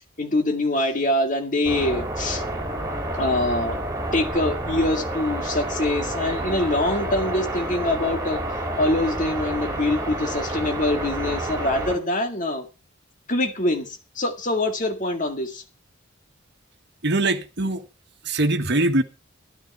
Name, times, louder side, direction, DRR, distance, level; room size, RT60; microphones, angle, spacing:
voice 1, 0.2-2.4 3.2-3.8 4.1-12.7 13.3-15.6, left 1 dB, 40° left, 2.1 m, -24 dB
sound 1, 1.6-12.0, right 1 dB, 15° right, 3.7 m, -29 dB
voice 2, 17.0-17.8 18.3-19.0, right 2 dB, 60° right, 1.4 m, -22 dB
12.5 x 11.5 x 4.5 m
head